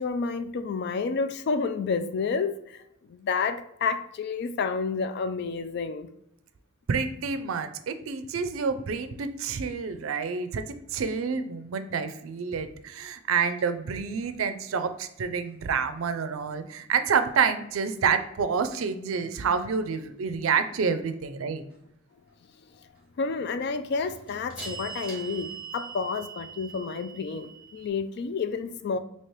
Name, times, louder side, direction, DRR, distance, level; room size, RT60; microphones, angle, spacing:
voice 1, 0.0-6.1 22.7-22.8 23.2-29.0, left 4 dB, 55° left, 10 dB, 0.3 m, -30 dB
voice 2, 6.9-10.6 10.9-21.7, right 6 dB, 80° right, 10 dB, 0.4 m, -28 dB
sound 1, 13.6-13.7 23.9-27.9, right 6 dB, 5° right, 1.2 m, -41 dB
3.2 x 2.8 x 4.4 m, 0.79 s
head